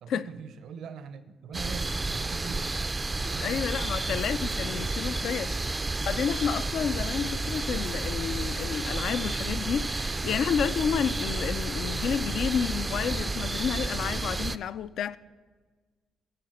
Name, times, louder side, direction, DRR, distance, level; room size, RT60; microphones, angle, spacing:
voice 1, 0.0-3.8 4.1-4.4, right 6 dB, 75° right, 0.6 m, -43 dB
sound 1, 1.5-14.6, right 3 dB, 20° right, 0.3 m, -31 dB
voice 2, 3.4-15.2, left 8 dB, 70° left, 0.3 m, -30 dB
11.5 x 4.1 x 6.4 m
cardioid pair, 90°, 0 cm